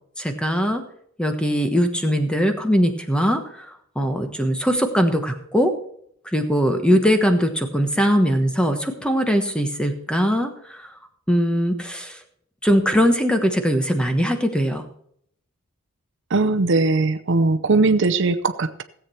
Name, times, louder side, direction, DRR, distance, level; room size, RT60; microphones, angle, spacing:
voice 1, 0.2-0.8 1.2-3.7 3.9-5.7 6.3-10.9 11.3-12.2 12.6-14.8, equal, 5° left, 6 dB, 1.1 m, -21 dB
voice 2, 16.3-18.8, right 3 dB, 60° right, 10 dB, 0.7 m, -19 dB
16.5 x 8.2 x 4.5 m, 0.68 s
head